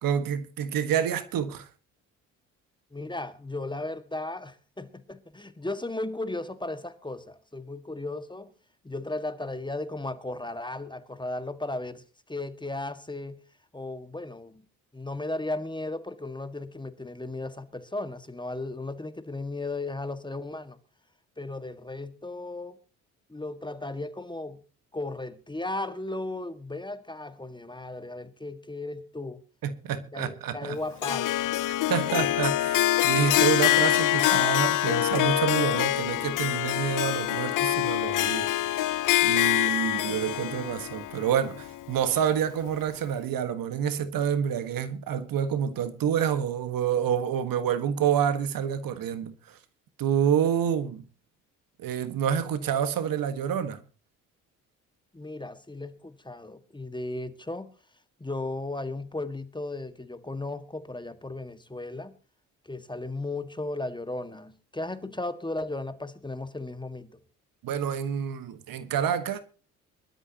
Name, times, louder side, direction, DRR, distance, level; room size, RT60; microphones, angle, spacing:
voice 1, 0.0-1.7 29.6-30.8 31.9-38.9 39.2-49.6 50.0-51.0 51.8-53.8 67.6-69.4, right 8 dB, 60° right, 1.6 m, -28 dB
voice 2, 2.9-8.5 8.8-13.4 13.7-14.6 14.9-20.8 21.4-22.8 23.3-24.6 24.9-29.4 29.9-31.4 55.1-57.7 58.2-62.2 62.6-67.2, left 2 dB, 10° left, 1.8 m, -35 dB
Harp, 31.0-42.3, left 15 dB, 55° left, 0.7 m, -25 dB
23.0 x 12.5 x 2.9 m
hypercardioid pair, 55°, 38 cm